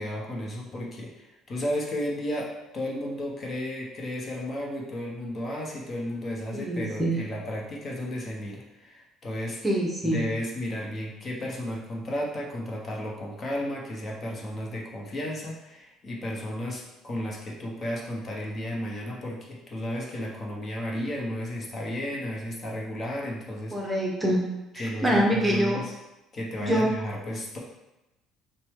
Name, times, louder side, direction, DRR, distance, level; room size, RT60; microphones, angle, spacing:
voice 1, 0.0-2.5 2.7-9.6 10.0-23.9 24.8-25.9 26.3-27.6, left 1 dB, 35° left, -2 dB, 1.0 m, -33 dB
voice 2, 6.5-7.2 9.6-10.2 23.7-24.4 24.7-25.8 26.6-26.9, equal, 15° right, -2 dB, 0.8 m, -25 dB
5.9 x 2.2 x 3.6 m, 0.97 s
cardioid pair, 115°, 0 cm